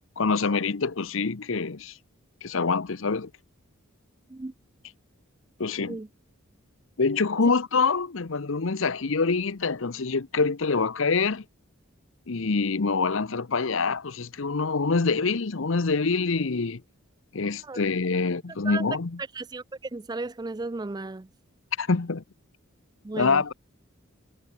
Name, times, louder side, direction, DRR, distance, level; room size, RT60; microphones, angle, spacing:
voice 1, 0.2-2.0 2.4-3.3 5.6-6.0 7.0-11.4 12.3-16.8 17.3-19.2 21.8-22.2 23.1-23.5, left 4 dB, 65° left, 0.8 m, -25 dB
voice 2, 19.9-21.3 23.0-23.4, right 3 dB, 20° right, 0.4 m, -34 dB
head